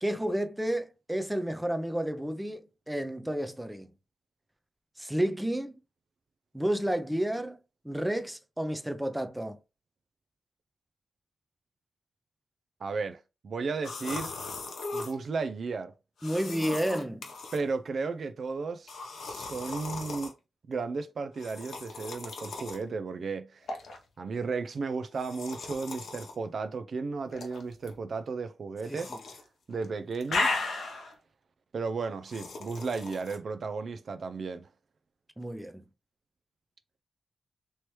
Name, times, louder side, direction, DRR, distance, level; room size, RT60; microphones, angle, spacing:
voice 1, 0.0-3.9 5.0-5.8 6.5-7.6 7.8-9.6 16.2-17.2 28.9-29.2 35.4-35.8, right 1 dB, 5° right, 0.5 m, -31 dB
voice 2, 12.8-13.2 13.4-14.3 14.9-15.9 17.5-18.9 19.2-20.3 20.7-23.6 24.2-29.1 29.7-30.5 31.7-34.7, right 4 dB, 60° right, 0.3 m, -34 dB
sound 1, 13.8-15.1 16.2-17.6 18.9-20.3 21.4-22.8 23.7-24.0 25.1-26.3 27.3-27.9 28.9-29.4 29.7-31.1 32.3-33.4, left 3 dB, 75° left, 0.9 m, -36 dB
3.0 x 3.0 x 3.1 m
cardioid pair, 70°, 0 cm